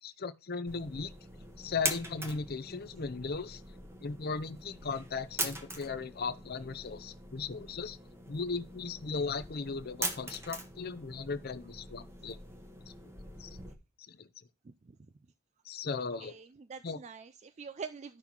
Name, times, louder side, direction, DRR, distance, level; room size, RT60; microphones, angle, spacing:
voice 1, 0.0-1.1 1.6-3.6 4.0-8.0 8.3-12.4 13.4-13.5 14.1-14.3 15.6-16.4 16.8-17.0, left 4 dB, 45° left, 0.6 m, -37 dB
sound 1, 0.7-13.7, right 1 dB, 10° right, 1.0 m, -42 dB
voice 2, 15.9-18.2, right 5 dB, 30° right, 0.3 m, -45 dB
13.0 x 5.5 x 2.9 m
head